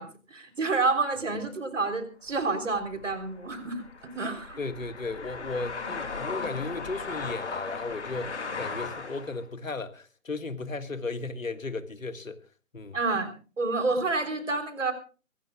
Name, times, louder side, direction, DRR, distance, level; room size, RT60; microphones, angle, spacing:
voice 1, 0.0-4.6 5.8-5.9 12.9-14.9, right 3 dB, 65° right, 3.7 m, -29 dB
sound 1, 2.3-9.4, left 4 dB, 55° left, 2.5 m, -37 dB
voice 2, 4.6-12.4 12.7-13.0, left 3 dB, 75° left, 1.8 m, -35 dB
23.5 x 18.0 x 2.3 m
figure-of-eight pair, 155°, 41 cm